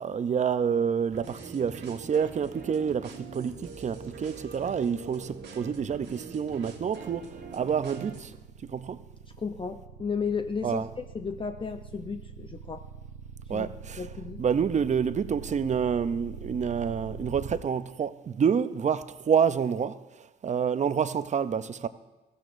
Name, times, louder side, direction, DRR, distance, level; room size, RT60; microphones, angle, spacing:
voice 1, 0.0-7.3 7.5-8.3 8.6-9.0 10.6-10.9 13.5-14.0 14.4-20.0 20.4-21.9, right 7 dB, 35° right, 0.6 m, -28 dB
sound 1, 1.1-8.2, right 4 dB, 60° right, 1.5 m, -44 dB
sound 2, 5.5-17.6, right 5 dB, 90° right, 0.8 m, -44 dB
voice 2, 9.4-12.8 13.5-13.7 14.0-14.4, left 5 dB, 25° left, 0.5 m, -34 dB
15.5 x 13.5 x 2.6 m
cardioid pair, 90°, 20 cm